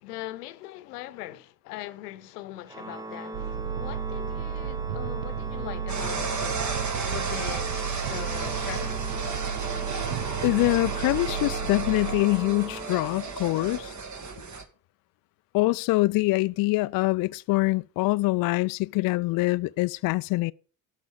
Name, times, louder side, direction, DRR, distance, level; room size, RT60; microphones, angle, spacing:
voice 1, 0.0-7.7 8.0-9.1, left 15 dB, 75° left, 1.0 m, -41 dB
Organ, 2.7-13.6, right 2 dB, 10° right, 0.7 m, -39 dB
sound 1, 3.3-12.2, right 9 dB, 75° right, 0.8 m, -33 dB
sound 2, 5.9-14.6, right 4 dB, 35° right, 2.1 m, -34 dB
voice 2, 10.4-13.9 15.5-20.5, left 21 dB, 50° left, 0.4 m, -24 dB
11.5 x 6.1 x 6.9 m
hypercardioid pair, 50°, 47 cm